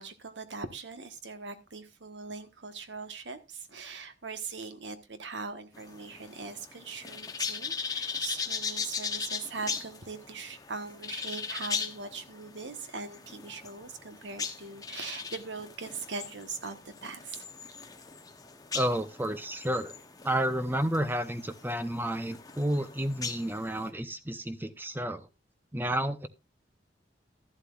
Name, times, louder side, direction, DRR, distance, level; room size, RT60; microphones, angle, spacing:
voice 1, 0.0-17.4, right 4 dB, 85° right, 9 dB, 1.3 m, -41 dB
sound 1, 5.7-23.9, left 5 dB, 20° left, 0.9 m, -39 dB
voice 2, 18.7-20.0 20.2-25.3 25.7-26.3, right 1 dB, 10° right, 11 dB, 0.7 m, -31 dB
13.5 x 11.5 x 2.5 m, 0.25 s
head